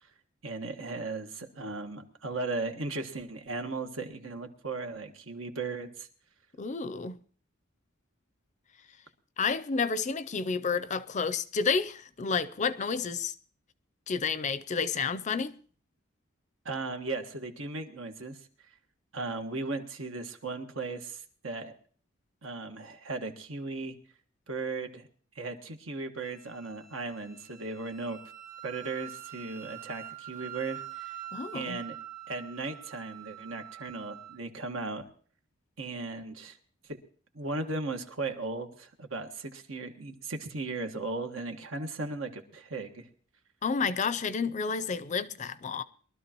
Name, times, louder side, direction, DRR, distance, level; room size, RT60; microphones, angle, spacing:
voice 1, 0.4-6.1 16.6-18.4 19.1-21.7 22.4-24.0 24.5-25.1 25.3-28.2 28.6-31.2 31.5-31.9 32.3-35.0 35.8-36.6 36.9-37.0 37.3-43.1, right 3 dB, 80° right, 1.6 m, -37 dB
voice 2, 6.6-7.2 9.4-13.3 14.1-15.5 31.3-31.8 43.6-45.8, left 5 dB, 35° left, 0.5 m, -30 dB
Wind instrument woodwind instrument, 26.2-34.4, right 12 dB, 45° right, 1.7 m, -45 dB
22.5 x 12.5 x 3.0 m
head